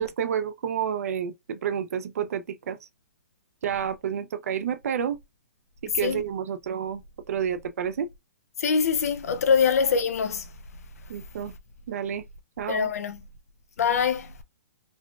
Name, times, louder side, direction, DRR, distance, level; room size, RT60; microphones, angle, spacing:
voice 1, 0.0-2.9 3.6-5.2 5.8-8.1 11.1-11.5 11.9-12.3 12.6-12.9, right 8 dB, 70° right, 0.5 m, -30 dB
voice 2, 8.6-10.5 12.7-13.2 13.8-14.3, left 6 dB, 70° left, 0.6 m, -24 dB
4.0 x 2.3 x 2.3 m
hypercardioid pair, 145°, 8 cm